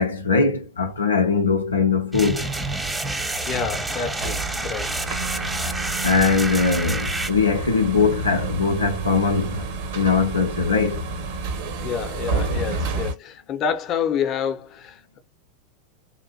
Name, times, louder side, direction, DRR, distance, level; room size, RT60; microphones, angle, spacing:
voice 1, 0.0-2.5 6.0-9.7 9.9-11.0, left 4 dB, 80° left, 0.6 m, -21 dB
sound 1, 2.1-7.3, right 2 dB, 10° right, 0.6 m, -29 dB
sound 2, 2.4-13.1, right 3 dB, 55° right, 1.0 m, -30 dB
voice 2, 3.4-4.4 4.6-4.9 11.8-15.2, left 7 dB, 35° left, 0.8 m, -28 dB
3.8 x 2.5 x 2.2 m
figure-of-eight pair, 85°, 0 cm